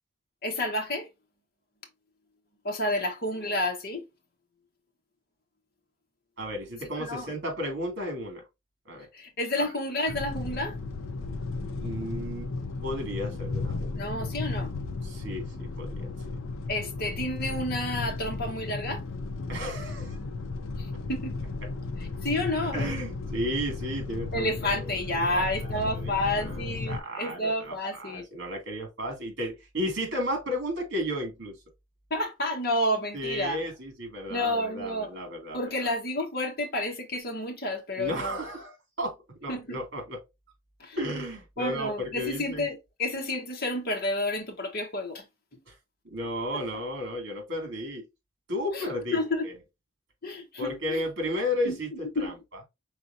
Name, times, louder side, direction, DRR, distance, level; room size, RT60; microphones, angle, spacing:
voice 1, 0.4-1.1 2.6-4.0 7.0-7.3 9.1-10.7 13.9-14.7 16.7-19.0 21.1-21.4 22.2-22.9 24.3-28.2 32.1-33.6 34.3-35.1 35.5-38.4 39.5-39.8 40.8-41.0 41.6-45.2 48.7-49.5 50.2-51.0 51.6-51.8 52.1-52.3, left 1 dB, 50° left, 1.4 m, -30 dB
voice 2, 6.4-8.4 8.8-9.1 9.6-9.7 11.7-12.5 12.8-14.1 15.0-15.5 15.8-16.4 19.5-20.2 21.6-21.7 22.6-31.5 33.1-35.9 38.0-39.1 39.4-40.2 41.0-42.7 45.7-45.8 46.1-48.1 48.5-49.5 50.6-52.3, equal, 60° right, 2.4 m, -34 dB
sound 1, 10.1-27.0, left 3 dB, 85° left, 0.6 m, -35 dB
5.0 x 3.8 x 2.7 m
head